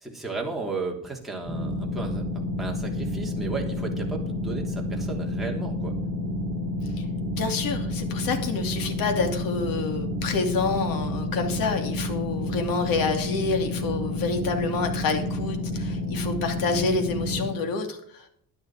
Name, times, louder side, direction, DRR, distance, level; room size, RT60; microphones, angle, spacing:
voice 1, 0.0-2.3 2.6-5.9, right 3 dB, ahead, -2 dB, 3.1 m, -34 dB
sound 1, 1.4-17.5, left 1 dB, 25° right, 3.3 m, -30 dB
voice 2, 7.3-18.3, left 4 dB, 65° left, 5 dB, 2.7 m, -28 dB
11.5 x 10.5 x 4.9 m, 0.64 s
cardioid pair, 145°, 38 cm